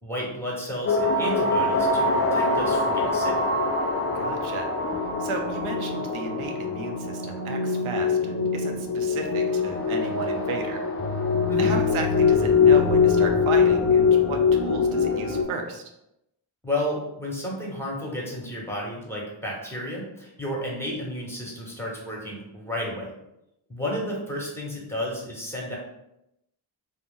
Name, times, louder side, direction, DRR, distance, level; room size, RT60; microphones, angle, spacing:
voice 1, 0.0-3.4 11.5-11.7 16.6-23.1 23.7-25.8, left 1 dB, 5° left, -3 dB, 1.2 m, -32 dB
sound 1, 0.9-15.4, left 4 dB, 30° left, 0.4 m, -23 dB
voice 2, 4.1-10.8 11.6-15.8, right 4 dB, 80° right, 3 dB, 0.5 m, -34 dB
2.3 x 2.1 x 3.7 m, 0.85 s
supercardioid pair, 40°, 49 cm